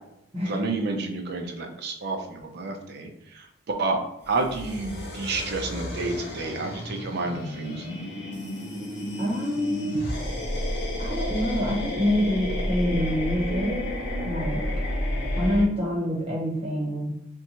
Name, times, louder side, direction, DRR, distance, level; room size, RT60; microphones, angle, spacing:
voice 1, 0.4-3.5 3.8-4.0 4.3-7.9, right 3 dB, 60° right, 3 dB, 0.5 m, -30 dB
sound 1, 4.2-15.6, left 1 dB, 70° left, 1.1 m, -31 dB
voice 2, 9.2-10.0 11.0-13.8 14.2-14.6 15.4-17.1, left 1 dB, 30° right, -3 dB, 0.9 m, -26 dB
2.6 x 2.2 x 2.8 m, 0.83 s
head